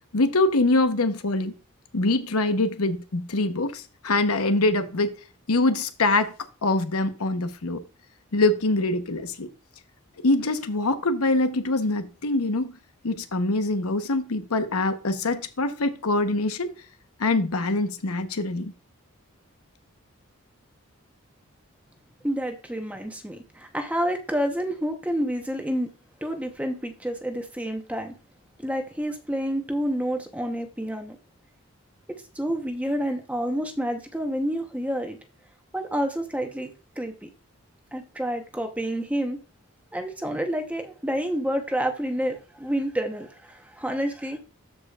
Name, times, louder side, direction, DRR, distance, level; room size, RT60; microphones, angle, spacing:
voice 1, 0.1-1.6 1.9-5.2 5.5-6.3 6.6-7.8 8.3-9.5 10.2-12.7 13.0-16.7 17.2-18.7, left 2 dB, 90° left, 1.0 m, -24 dB
voice 2, 22.2-25.9 26.2-28.1 28.6-31.2 32.3-35.2 35.7-37.3 37.9-39.4 39.9-44.4, equal, 5° right, 0.9 m, -29 dB
13.5 x 4.9 x 2.4 m
head